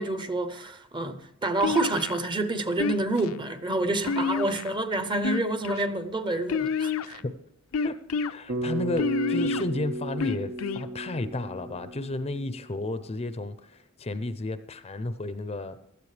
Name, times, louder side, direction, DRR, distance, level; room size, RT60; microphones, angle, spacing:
voice 1, 0.0-7.2, right 2 dB, 20° right, 0.7 m, -28 dB
sound 1, 1.6-2.2 2.8-3.3 4.0-4.8 5.2-5.9 6.5-7.2 7.7-8.3 9.0-9.6 10.2-10.8, left 5 dB, 75° left, 0.5 m, -28 dB
voice 2, 7.8-15.8, left 2 dB, 30° left, 0.5 m, -33 dB
Bass guitar, 8.5-12.9, right 1 dB, 85° right, 1.5 m, -34 dB
16.5 x 12.5 x 3.3 m
head